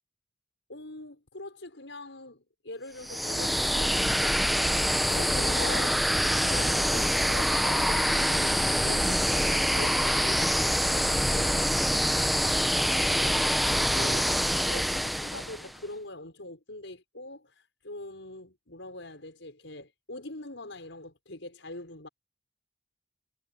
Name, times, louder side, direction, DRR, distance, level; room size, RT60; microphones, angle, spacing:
voice 1, 0.7-11.7 13.2-22.1, left 2 dB, 80° left, 6.0 m, -42 dB
sound 1, 3.0-15.7, equal, ahead, 0.7 m, -25 dB
head